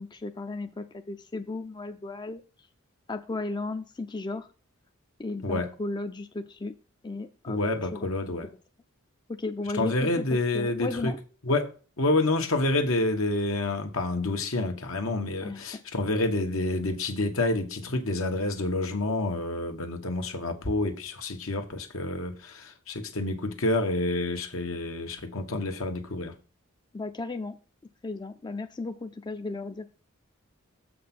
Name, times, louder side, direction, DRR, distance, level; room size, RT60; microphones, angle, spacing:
voice 1, 0.0-2.4 3.1-4.5 5.2-6.7 7.0-7.6 7.9-8.1 9.3-10.2 10.5-11.2 15.4-15.6 26.9-27.6 28.0-29.8, left 3 dB, 20° left, 0.4 m, -35 dB
voice 2, 7.5-8.5 9.7-11.1 11.4-26.3, left 2 dB, 75° left, 1.2 m, -28 dB
7.0 x 5.1 x 5.9 m
head